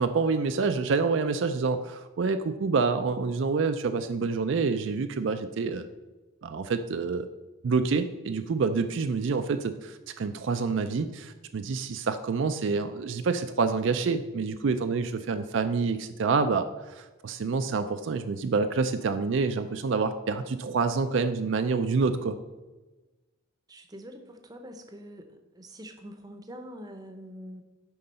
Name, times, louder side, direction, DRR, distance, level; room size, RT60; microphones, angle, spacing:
voice 1, 0.0-5.9 6.4-7.3 7.6-22.4, right 4 dB, 60° right, 8 dB, 0.4 m, -27 dB
voice 2, 23.7-25.3 25.5-27.6, equal, 20° right, 5 dB, 0.7 m, -44 dB
9.2 x 3.9 x 5.5 m, 1.2 s
head